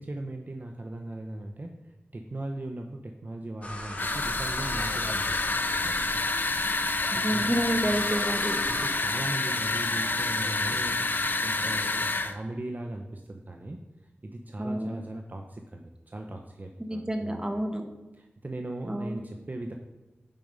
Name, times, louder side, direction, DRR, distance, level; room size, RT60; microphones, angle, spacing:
voice 1, 0.0-6.1 6.8-7.5 8.7-13.8 14.2-17.5 18.2-19.7, right 1 dB, 45° right, 3 dB, 0.8 m, -39 dB
sound 1, 3.6-8.9, left 1 dB, 30° left, 1.7 m, -39 dB
sound 2, 4.0-12.3, left 3 dB, 50° left, 0.7 m, -28 dB
voice 2, 7.1-8.6 14.6-15.0 16.8-17.8 18.9-19.1, right 1 dB, 20° right, 4 dB, 1.3 m, -29 dB
9.1 x 5.2 x 5.4 m, 1.1 s
wide cardioid pair, 80°, 4 cm